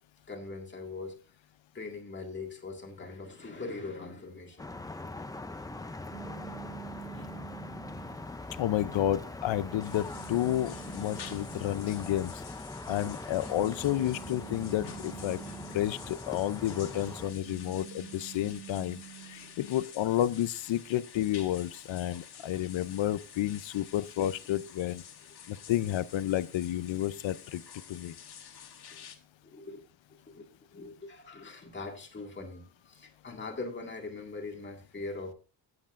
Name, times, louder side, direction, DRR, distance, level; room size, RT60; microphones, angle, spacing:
voice 1, 0.3-1.2 1.7-4.7 5.0-5.1 6.8-7.3 19.3-19.5 27.9-28.0 28.9-29.0 29.4-29.8 30.1-35.3, left 3 dB, 25° left, 2.0 m, -42 dB
sound 1, 4.6-17.3, left 2 dB, 10° left, 0.4 m, -42 dB
sound 2, 6.1-8.3 8.9-12.0 13.2-16.2 16.6-19.6, right 15 dB, 70° right, 1.2 m, -49 dB
voice 2, 8.5-12.3 12.9-15.4 15.7-19.0 19.3-25.0 25.5-27.6 27.9-28.2, left 12 dB, 85° left, 0.7 m, -31 dB
sound 3, 9.8-29.2, left 8 dB, 60° left, 1.3 m, -50 dB
16.0 x 8.0 x 2.5 m
wide cardioid pair, 165°, 45 cm